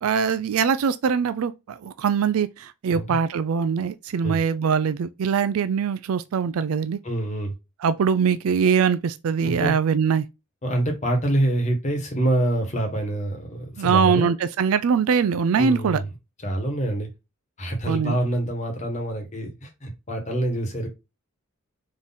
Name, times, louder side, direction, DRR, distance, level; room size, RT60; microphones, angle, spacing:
voice 1, 0.0-7.0 7.8-10.3 13.8-16.0 17.9-18.2, right 6 dB, 75° right, 0.4 m, -22 dB
voice 2, 7.0-7.5 9.4-9.7 10.6-14.3 15.6-16.1 16.4-17.1 17.6-20.9, right 1 dB, 30° left, 1.2 m, -26 dB
3.8 x 3.0 x 4.1 m
head